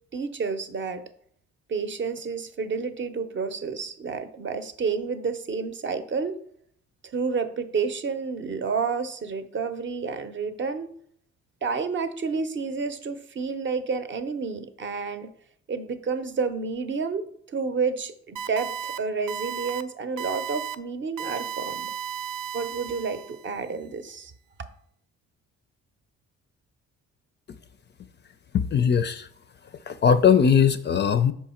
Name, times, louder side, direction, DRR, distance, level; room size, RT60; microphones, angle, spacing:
voice 1, 0.1-1.0 1.7-6.4 7.0-10.9 11.6-15.3 15.7-21.9 22.5-24.3, right 5 dB, 40° right, 10 dB, 0.6 m, -30 dB
sound 1, 18.4-19.0 19.3-19.8 20.2-20.8 21.2-23.5, right 8 dB, 80° right, 0.5 m, -34 dB
voice 2, 28.5-29.3 29.7-31.3, left 7 dB, 35° left, 11 dB, 0.4 m, -20 dB
5.6 x 4.8 x 4.3 m, 0.64 s
cardioid pair, 90°, 30 cm